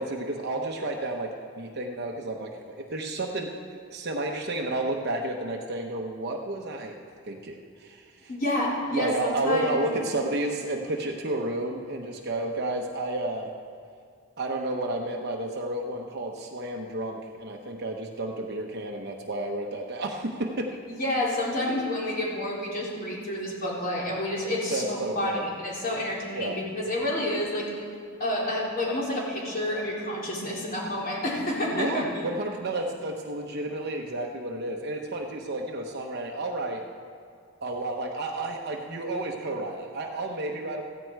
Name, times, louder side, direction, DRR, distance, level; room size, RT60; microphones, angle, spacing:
voice 1, 0.0-3.5 3.9-7.0 7.3-8.3 8.9-13.5 14.4-20.7 24.7-25.4 26.3-26.6 31.7-36.8 37.6-40.8, right 2 dB, 55° right, 1 dB, 1.0 m, -31 dB
voice 2, 8.3-9.9 20.9-27.7 28.2-32.2, left 1 dB, 45° left, -5 dB, 3.9 m, -29 dB
15.5 x 15.0 x 4.7 m, 2.3 s
head